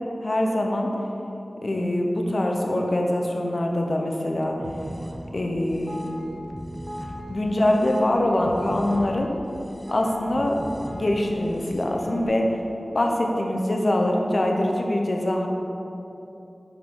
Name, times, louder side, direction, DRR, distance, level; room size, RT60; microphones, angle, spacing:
voice 1, 0.2-0.9 1.6-4.6 5.3-6.0 7.3-9.3 9.9-10.6 10.9-12.4 12.9-15.5, left 1 dB, 55° left, 1 dB, 0.9 m, -23 dB
sound 1, 4.6-12.3, equal, 25° right, 1.0 m, -38 dB
10.5 x 4.7 x 3.9 m, 2.9 s
wide cardioid pair, 50°, 0 cm